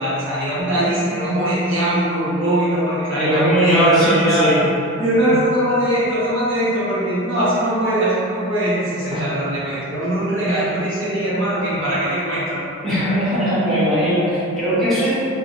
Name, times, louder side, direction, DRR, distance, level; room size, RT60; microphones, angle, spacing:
voice 1, 0.0-4.5 5.0-12.6, right 1 dB, 65° right, -10 dB, 1.1 m, -21 dB
voice 2, 3.1-4.6 5.3-5.4 9.1-9.2 12.8-15.1, equal, ahead, -13 dB, 0.7 m, -19 dB
3.8 x 2.2 x 2.9 m, 2.7 s
head